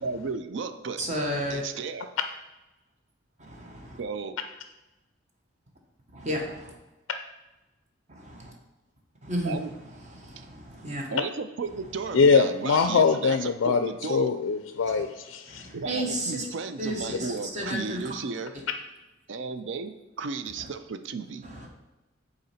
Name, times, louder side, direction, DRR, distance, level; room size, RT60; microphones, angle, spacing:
voice 1, 0.0-1.0 1.5-2.1 4.0-4.4 9.4-9.7 10.4-10.5 11.1-14.3 15.7-18.5 19.3-21.5, right 4 dB, 65° right, 10 dB, 0.4 m, -34 dB
voice 2, 1.0-1.6 3.4-4.0 6.1-6.7 8.1-8.5 9.2-11.1 14.9-15.0 15.5-16.5 16.8-18.1 20.6-20.7 21.4-21.7, equal, 35° right, 1 dB, 1.0 m, -33 dB
voice 3, 12.1-15.7, left 5 dB, 80° left, 8 dB, 0.4 m, -23 dB
6.6 x 4.1 x 4.2 m, 1.0 s
head